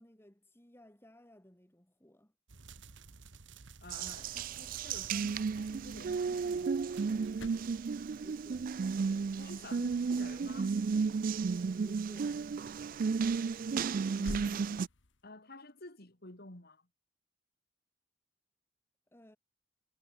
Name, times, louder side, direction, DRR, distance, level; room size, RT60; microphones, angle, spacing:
voice 1, 0.0-2.3 8.2-8.7 11.8-12.5 19.1-19.4, left 1 dB, 15° left, 2.3 m, -58 dB
sound 1, 2.5-9.3, right 4 dB, 70° right, 1.2 m, -55 dB
voice 2, 3.8-7.2 9.4-11.1 14.2-14.8 15.2-16.9, left 2 dB, 55° left, 3.8 m, -51 dB
Water tap faucet, 3.9-14.9, right 5 dB, 45° right, 0.3 m, -33 dB
sound 2, 4.2-15.3, left 1 dB, 75° left, 1.7 m, -53 dB
head